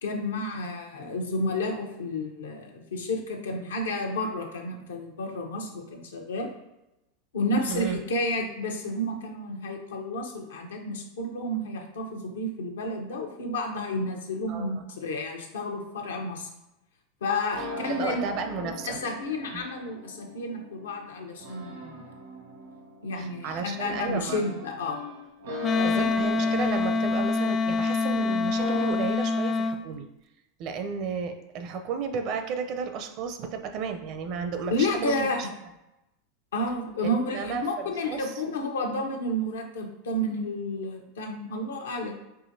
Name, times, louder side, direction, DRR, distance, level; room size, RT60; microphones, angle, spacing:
voice 1, 0.0-6.5 7.3-16.5 17.2-18.2 18.8-22.1 23.0-25.0 25.7-26.1 34.7-35.4 36.5-42.1, left 1 dB, 85° left, 2 dB, 0.7 m, -31 dB
voice 2, 7.7-8.0 14.5-14.7 17.6-19.0 19.5-19.6 23.2-24.4 25.8-30.1 30.6-35.5 37.0-38.3, right 5 dB, 50° right, 7 dB, 0.5 m, -33 dB
sound 1, 17.5-28.9, left 1 dB, 75° right, 1.0 m, -39 dB
Wind instrument woodwind instrument, 25.6-29.8, left 4 dB, 30° left, 0.3 m, -25 dB
4.8 x 2.8 x 2.7 m, 0.92 s
hypercardioid pair, 95°, 0 cm